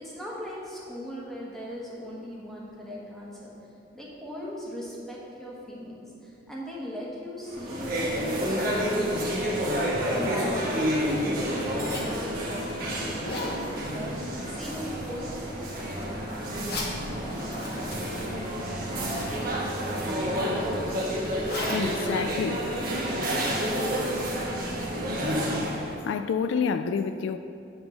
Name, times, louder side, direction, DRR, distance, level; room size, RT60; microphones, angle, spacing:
voice 1, 0.0-3.5 3.9-9.7 10.1-16.1, equal, ahead, 1.3 m, -39 dB
sound 1, 7.5-25.9, equal, 50° right, 1.3 m, -29 dB
Zipper (clothing), 10.6-23.2, left 1 dB, 55° left, 1.0 m, -40 dB
voice 2, 21.7-22.7 26.0-27.4, left 6 dB, 75° left, 0.3 m, -28 dB
8.9 x 3.6 x 6.3 m
head